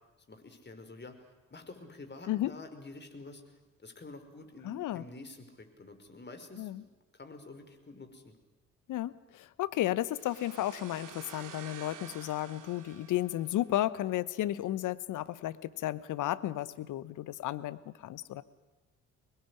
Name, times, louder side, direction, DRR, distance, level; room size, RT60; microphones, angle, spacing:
voice 1, 0.3-6.9 7.1-8.4, left 2 dB, 30° left, 6 dB, 5.3 m, -49 dB
voice 2, 4.6-5.0 6.6-6.8 8.9-18.4, left 14 dB, 60° left, 16 dB, 1.2 m, -33 dB
sound 1, 10.1-13.9, right 9 dB, 65° right, 2.5 m, -50 dB
24.5 x 20.5 x 10.0 m, 1.1 s
hypercardioid pair, 50°, 34 cm